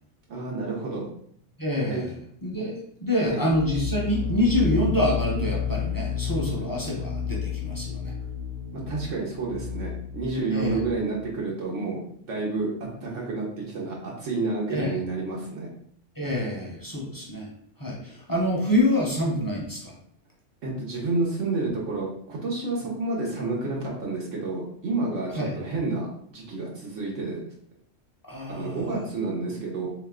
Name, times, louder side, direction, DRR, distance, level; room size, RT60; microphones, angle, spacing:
voice 1, 0.3-1.1 1.9-2.0 3.2-3.4 8.7-12.7 13.0-15.7 20.6-27.4 28.6-29.9, right 3 dB, 75° right, -3 dB, 1.2 m, -30 dB
voice 2, 1.6-2.1 2.4-2.7 3.0-8.1 10.5-10.8 14.7-15.0 16.2-17.5 17.8-19.9 25.4-25.5 28.3-29.0, left 1 dB, 20° left, -3 dB, 0.6 m, -26 dB
sound 1, 3.5-11.2, left 7 dB, 55° right, 0.8 m, -31 dB
3.2 x 2.8 x 3.6 m, 0.66 s
omnidirectional pair, 1.3 m